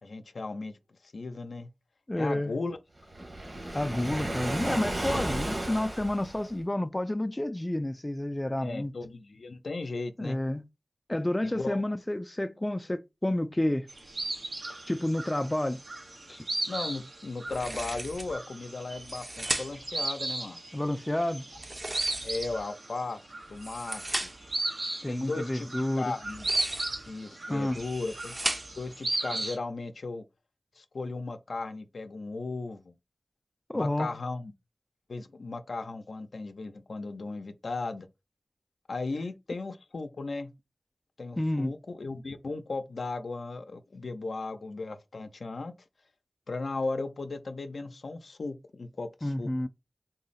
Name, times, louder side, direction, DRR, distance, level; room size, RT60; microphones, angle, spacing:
voice 1, 0.0-1.7 2.2-2.8 8.6-10.4 11.4-11.8 16.7-20.6 22.2-23.2 23.5-24.3 25.1-25.7 26.0-26.5 27.1-28.4 28.8-30.2 30.8-32.9 33.7-34.5 35.1-38.1 38.9-40.5 41.2-45.7 46.5-49.5, left 3 dB, 85° left, 0.5 m, -36 dB
voice 2, 2.1-2.5 3.7-8.9 10.2-10.6 11.1-13.9 14.9-15.8 16.3-16.5 20.7-21.5 25.0-26.1 27.5-27.8 33.7-34.1 41.4-41.7 49.2-49.7, left 1 dB, 25° left, 0.3 m, -30 dB
Waves surf, 3.1-6.6, right 1 dB, 55° right, 1.2 m, -33 dB
sound 1, 13.9-29.6, right 2 dB, 85° right, 0.9 m, -36 dB
sound 2, 17.5-18.4 18.9-19.9 21.5-22.6 23.4-24.5 26.2-27.1 27.7-28.9, right 1 dB, 40° right, 0.6 m, -36 dB
3.8 x 2.0 x 4.0 m
wide cardioid pair, 45°, 0 cm